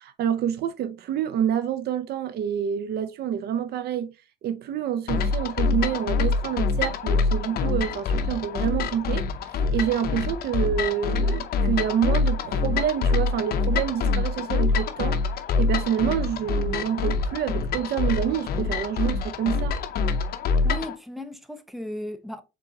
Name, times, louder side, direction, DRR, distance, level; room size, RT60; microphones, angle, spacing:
voice 1, 0.0-4.1 4.4-9.3 9.7-15.2 15.6-19.7, right 9 dB, 65° right, 0.6 m, -27 dB
sound 1, 5.1-20.9, left 4 dB, 60° left, 0.7 m, -25 dB
voice 2, 20.6-22.4, left 1 dB, ahead, 0.7 m, -36 dB
4.7 x 3.8 x 2.8 m
cardioid pair, 115°, 18 cm